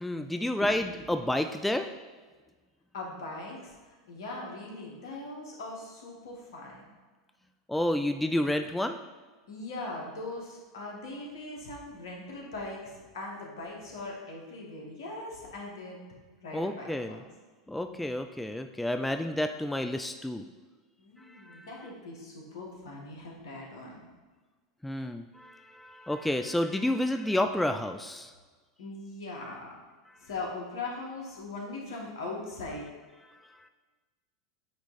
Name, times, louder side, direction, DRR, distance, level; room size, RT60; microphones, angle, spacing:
voice 1, 0.0-2.0 7.7-9.0 16.5-17.2 17.7-20.4 21.2-21.7 24.8-28.3 30.1-30.2 33.3-33.7, left 1 dB, 5° left, 7 dB, 0.3 m, -30 dB
voice 2, 2.9-6.8 9.5-16.0 16.4-17.3 21.0-24.0 28.8-29.8 30.2-32.9, left 2 dB, 70° left, -2 dB, 1.7 m, -40 dB
8.3 x 3.1 x 4.2 m, 1.4 s
hypercardioid pair, 90°, 2 cm